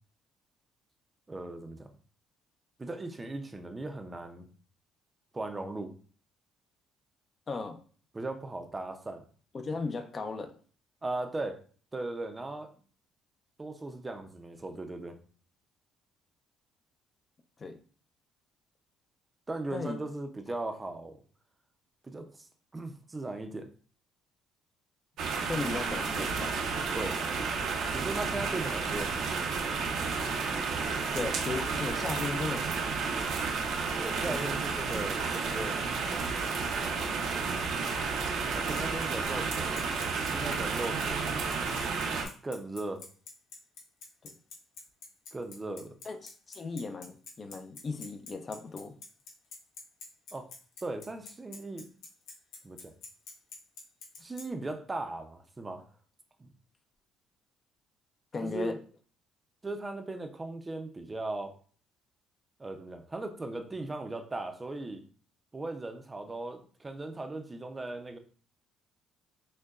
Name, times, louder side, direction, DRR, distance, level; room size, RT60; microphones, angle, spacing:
voice 1, 1.3-1.9 2.8-4.5 5.3-5.9 8.1-9.2 11.0-11.6 11.9-12.7 13.6-15.2 19.5-21.2 22.0-22.5 22.7-23.7 26.9-27.2 27.9-29.1 34.0-35.8 38.5-39.8 40.3-41.3 42.4-43.1 45.3-46.0 50.3-50.5 50.8-51.9 52.6-52.9 54.2-55.9 56.4-56.5 58.4-58.8 59.6-61.5 62.6-65.0 65.5-68.2, right 2 dB, 20° right, 6 dB, 0.5 m, -38 dB
voice 2, 7.5-7.8 9.5-10.5 17.6-17.8 19.7-20.0 25.4-26.6 31.1-32.6 34.2-34.5 44.2-44.4 46.0-48.9 58.3-58.8, left 4 dB, 35° left, 6 dB, 0.5 m, -36 dB
sound 1, 25.2-42.3, right 5 dB, 70° right, 0.7 m, -31 dB
Bicycle, 38.5-54.4, left 5 dB, 80° left, 1.2 m, -46 dB
6.3 x 2.2 x 2.4 m, 0.42 s
cardioid pair, 110°, 0 cm